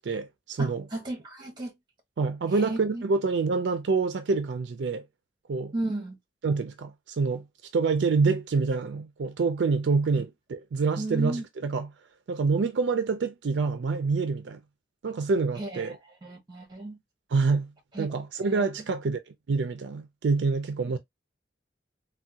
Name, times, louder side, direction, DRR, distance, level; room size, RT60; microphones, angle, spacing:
voice 1, 0.0-0.9 2.2-5.1 5.5-5.7 6.4-7.4 7.7-11.9 12.3-14.6 15.0-16.0 17.3-17.7 18.0-19.2 19.5-21.0, right 4 dB, 70° right, 0.4 m, -26 dB
voice 2, 0.6-1.7 2.5-3.0 5.7-6.2 11.0-11.4 15.6-17.0 17.9-18.1 18.4-18.7, right 2 dB, 25° right, 1.0 m, -34 dB
3.4 x 2.2 x 2.7 m
head